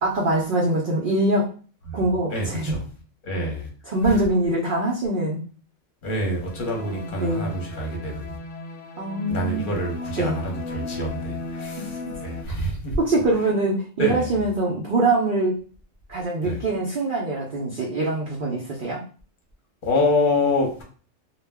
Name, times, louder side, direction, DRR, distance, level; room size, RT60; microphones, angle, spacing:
voice 1, 0.0-1.5 1.9-2.8 3.9-5.4 6.7-7.5 9.0-9.8 10.2-10.4 11.8-12.1 13.0-15.6 16.1-19.0, right 2 dB, 60° right, 0.5 m, -24 dB
voice 2, 2.3-2.8 3.2-3.7 4.0-4.2 6.0-8.4 9.3-13.0 14.0-14.3 16.4-16.6 19.8-20.8, left 1 dB, 45° left, 0.9 m, -26 dB
sound 1, 6.4-12.4, left 2 dB, 70° left, 0.8 m, -35 dB
2.3 x 2.1 x 3.4 m
omnidirectional pair, 1.4 m